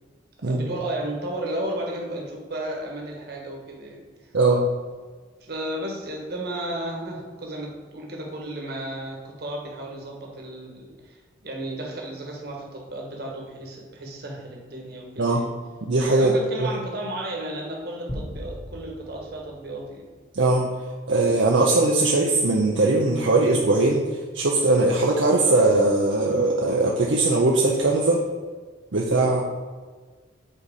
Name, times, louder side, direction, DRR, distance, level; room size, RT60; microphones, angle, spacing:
voice 1, 0.4-4.0 5.4-15.5 16.1-20.1, right 1 dB, 55° right, 0 dB, 1.4 m, -33 dB
voice 2, 15.8-16.3 16.6-16.7 20.3-20.7 21.1-24.0 24.3-28.2 28.9-29.4, right 2 dB, 70° right, -1 dB, 0.7 m, -20 dB
sound 1, 18.1-20.7, equal, 25° left, 1.1 m, -39 dB
7.7 x 4.0 x 5.0 m, 1.4 s
head